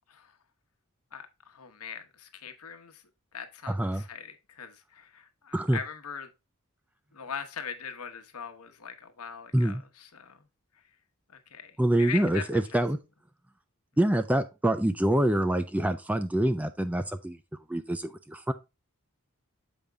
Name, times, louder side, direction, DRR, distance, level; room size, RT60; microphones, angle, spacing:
voice 1, 1.1-3.0 3.3-6.3 7.1-10.4 10.7-10.8 11.3-12.5 12.7-12.8, left 7 dB, 80° left, 1.0 m, -41 dB
voice 2, 3.7-4.0 5.5-5.8 9.5-9.8 11.8-13.0 14.0-17.4 17.7-18.5, right 1 dB, 5° right, 0.4 m, -26 dB
7.1 x 5.1 x 3.3 m
head